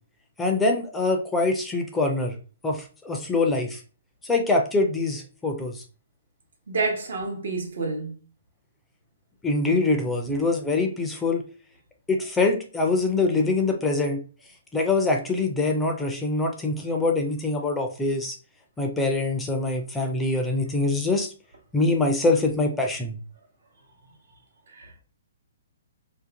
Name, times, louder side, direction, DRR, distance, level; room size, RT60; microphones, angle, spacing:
voice 1, 0.4-2.3 2.6-3.8 4.2-5.8 9.4-11.4 12.1-14.2 14.7-18.4 18.8-21.3 21.7-23.2, left 3 dB, 10° left, 0.4 m, -24 dB
voice 2, 6.7-8.1 24.7-25.0, right 3 dB, 75° right, 0.9 m, -29 dB
2.5 x 2.1 x 2.8 m
hypercardioid pair, 150°, 0 cm